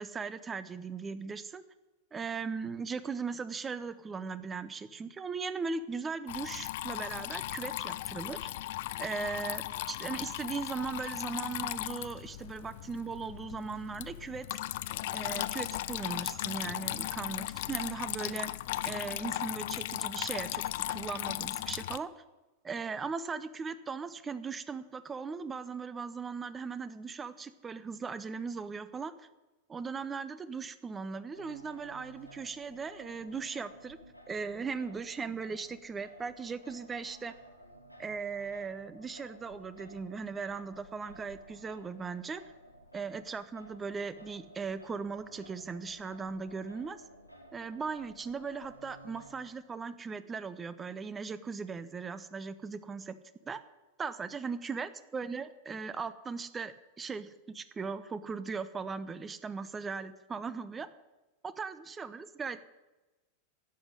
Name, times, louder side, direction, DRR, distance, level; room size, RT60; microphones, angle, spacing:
voice 1, 0.0-1.6 2.1-8.5 9.0-14.6 15.1-18.5 18.8-20.6 20.9-22.1 22.6-29.1 29.7-34.0 34.3-37.3 38.0-42.4 42.9-47.0 47.5-53.1 53.5-53.6 54.0-60.9 61.4-62.6, right 5 dB, 15° right, 14 dB, 0.8 m, -38 dB
Water tap faucet / Trickle dribble, 6.3-22.0, left 15 dB, 50° left, 0.5 m, -37 dB
Singing, 31.3-49.5, right 1 dB, 90° left, 1.9 m, -54 dB
11.5 x 8.1 x 10.0 m, 1.1 s
figure-of-eight pair, 90°, 0 cm